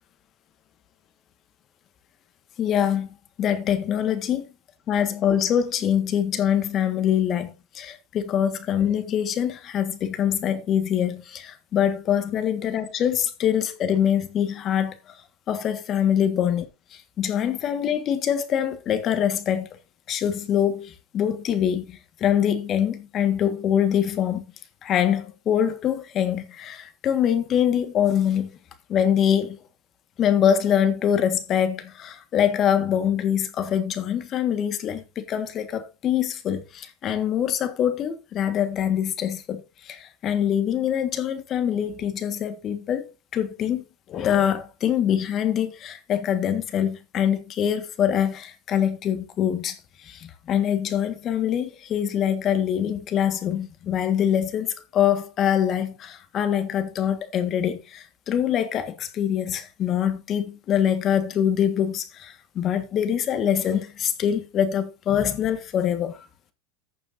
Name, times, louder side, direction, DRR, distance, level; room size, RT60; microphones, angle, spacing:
voice 1, 2.6-4.5 4.9-15.2 15.5-16.7 16.9-19.7 20.1-24.4 24.8-28.6 28.9-29.6 30.2-66.2, left 9 dB, 40° left, 1.6 m, -24 dB
15.0 x 6.8 x 2.6 m
supercardioid pair, 115°, 0 cm